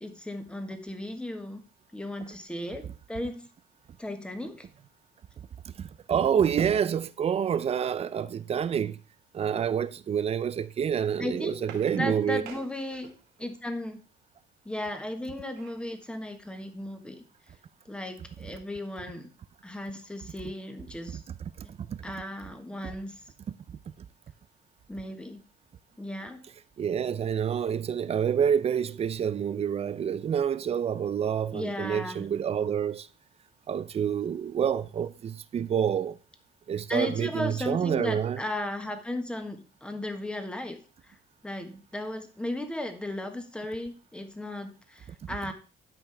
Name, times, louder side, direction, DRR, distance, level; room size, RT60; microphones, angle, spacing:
voice 1, 0.0-1.6 1.9-3.5 4.0-4.7 11.2-11.6 11.9-13.1 13.4-14.0 14.6-17.2 17.9-19.3 19.6-21.2 22.0-23.2 24.9-25.4 26.0-26.5 31.5-32.2 36.9-40.8 41.0-41.2 41.4-45.5, left 1 dB, 5° left, 1.4 m, -35 dB
voice 2, 5.4-9.0 9.3-12.4 21.1-21.2 21.6-22.0 23.7-24.1 26.8-33.1 33.7-36.2 36.7-38.4 45.2-45.3, right 8 dB, 35° right, 0.5 m, -28 dB
sound 1, 11.3-13.5 15.0-15.9 16.4-16.5 16.8-17.0, right 6 dB, 85° right, 2.2 m, -49 dB
12.0 x 5.2 x 3.4 m
cardioid pair, 110°, 17 cm